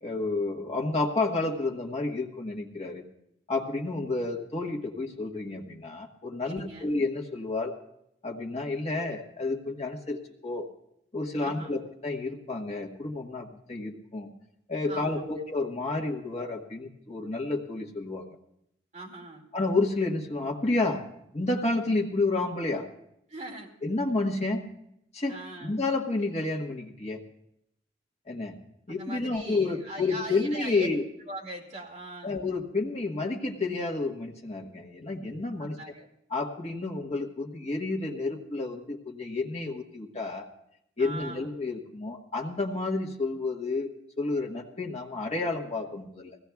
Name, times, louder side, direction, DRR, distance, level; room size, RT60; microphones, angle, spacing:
voice 1, 0.0-3.0 3.5-7.7 8.2-10.7 11.1-14.3 14.7-18.3 19.5-21.1 21.3-22.9 23.8-24.6 25.1-27.2 28.3-28.5 28.9-31.0 32.2-35.8 36.3-40.5 41.0-43.9 44.2-46.4, left 3 dB, 35° left, 1 dB, 1.3 m, -30 dB
voice 2, 6.4-7.0 11.4-11.8 14.9-15.4 18.9-19.4 23.3-23.7 25.3-25.7 28.9-30.9 31.3-32.3 35.6-36.1 41.0-41.5, right 2 dB, 40° right, -1 dB, 2.3 m, -41 dB
20.5 x 16.5 x 2.3 m, 0.78 s
head